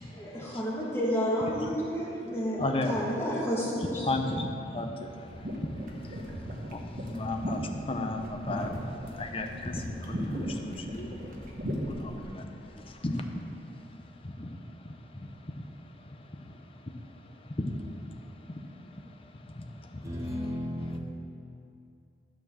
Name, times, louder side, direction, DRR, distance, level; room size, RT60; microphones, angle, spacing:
voice 1, 0.0-4.2, equal, 15° left, 1.6 m, -31 dB
voice 2, 2.6-3.1 4.0-20.5 20.8-21.0, left 2 dB, 30° left, 0.7 m, -36 dB
sound 1, 5.3-12.3, equal, 50° right, 1.3 m, -37 dB
voice 3, 20.0-21.0, left 1 dB, 20° right, 1.1 m, -34 dB
12.0 x 4.4 x 7.2 m
head